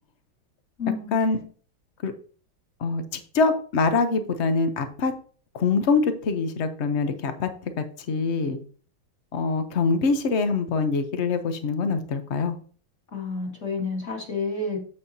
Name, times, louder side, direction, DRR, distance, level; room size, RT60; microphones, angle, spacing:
voice 1, 0.8-1.2 13.1-14.8, left 4 dB, 35° left, -1 dB, 2.0 m, -29 dB
voice 2, 3.3-5.1 5.5-7.5 7.8-8.6 9.3-12.5, left 4 dB, 70° left, 8 dB, 0.6 m, -24 dB
8.4 x 7.3 x 2.7 m, 0.43 s
omnidirectional pair, 2.3 m